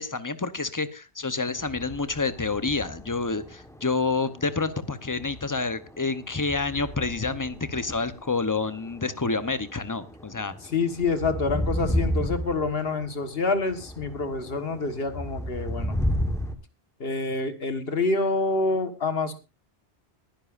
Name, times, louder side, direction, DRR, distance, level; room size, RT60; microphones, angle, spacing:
voice 1, 0.0-10.5, left 3 dB, 20° left, 12 dB, 0.8 m, -28 dB
sound 1, 1.6-16.6, equal, 5° left, 1.3 m, -33 dB
voice 2, 10.6-16.0 17.0-19.3, left 3 dB, 65° left, 9 dB, 1.7 m, -27 dB
21.5 x 11.0 x 2.5 m, 0.29 s
omnidirectional pair, 1.1 m